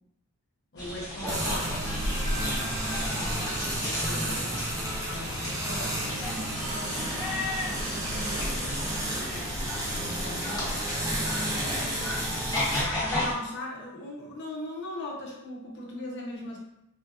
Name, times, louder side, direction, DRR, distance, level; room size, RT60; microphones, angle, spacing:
voice 1, 0.7-2.3 2.7-7.1 7.9-8.5 9.9-10.8 12.6-16.6, left 1 dB, 55° left, -2 dB, 0.6 m, -40 dB
animal farm castiadas, 0.8-13.3, left 1 dB, 20° left, 1.1 m, -33 dB
sound 1, 1.3-12.8, right 1 dB, 15° right, 0.6 m, -32 dB
3.3 x 2.7 x 2.3 m, 0.85 s
head